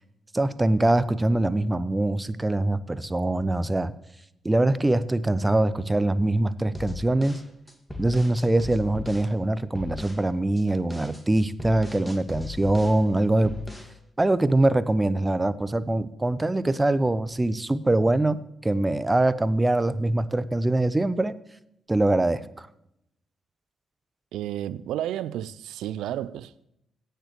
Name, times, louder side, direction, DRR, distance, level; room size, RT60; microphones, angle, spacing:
voice 1, 0.3-3.9 4.4-7.4 8.0-13.5 14.2-21.3 21.9-22.7, right 2 dB, 20° right, 0.8 m, -23 dB
sound 1, 6.7-9.3 9.7-10.2 10.6-13.0 13.4-14.0, left 3 dB, 15° left, 2.2 m, -38 dB
voice 2, 24.3-26.7, right 12 dB, 75° right, 0.4 m, -32 dB
17.5 x 6.8 x 3.2 m
hypercardioid pair, 40°, 0 cm